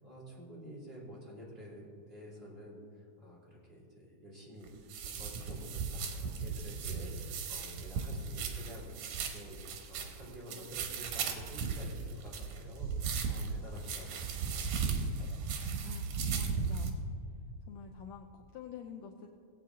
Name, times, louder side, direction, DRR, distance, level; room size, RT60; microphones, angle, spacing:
voice 1, 0.0-9.0 9.3-15.4, equal, 20° right, -6 dB, 3.0 m, -50 dB
sound 1, 4.7-16.9, right 5 dB, 85° right, 2.7 m, -36 dB
voice 2, 15.8-17.0 17.7-19.3, left 7 dB, 75° left, 2 dB, 1.7 m, -47 dB
19.0 x 8.4 x 3.7 m, 2.2 s
omnidirectional pair, 3.6 m